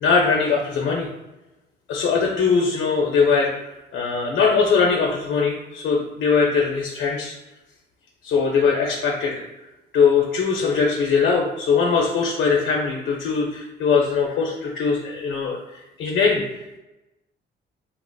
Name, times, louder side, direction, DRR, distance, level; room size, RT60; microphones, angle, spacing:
voice 1, 0.0-1.1 1.9-3.5 3.9-7.3 8.2-9.4 9.9-15.6 16.0-16.4, left 5 dB, 75° left, -1 dB, 0.6 m, -21 dB
3.7 x 2.4 x 2.2 m, 1.0 s
cardioid pair, 90°, 20 cm